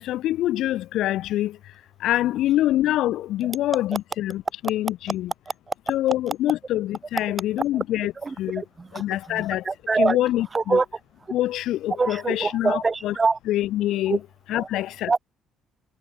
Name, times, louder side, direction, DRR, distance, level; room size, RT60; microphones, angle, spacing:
voice 1, 0.0-1.6 2.0-5.3 5.9-8.1 8.4-8.6 8.9-9.6 10.0-10.8 11.3-13.1 13.5-14.2 14.5-15.1, left 14 dB, 65° left, 1.1 m, -25 dB
voice 2, 8.2-10.2 10.5-10.9 11.9-13.4 14.0-14.2 14.5-14.7 15.1-15.2, right 4 dB, 30° right, 3.2 m, -25 dB
hypercardioid pair, 55°, 0 cm